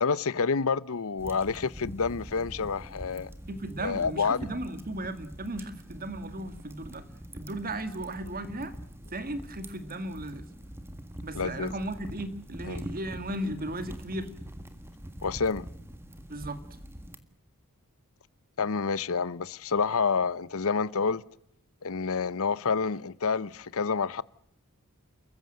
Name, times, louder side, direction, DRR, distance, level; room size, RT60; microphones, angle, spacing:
voice 1, 0.0-3.3 3.8-4.5 11.3-11.7 12.7-12.8 15.2-15.7 18.6-21.2 21.8-24.2, left 5 dB, 70° left, 0.8 m, -28 dB
sound 1, 1.2-17.2, equal, 10° right, 1.7 m, -44 dB
voice 2, 3.5-7.0 7.3-8.7 9.1-10.5 11.2-14.3 16.3-16.6, right 1 dB, 40° right, 2.0 m, -36 dB
28.5 x 15.0 x 7.8 m
head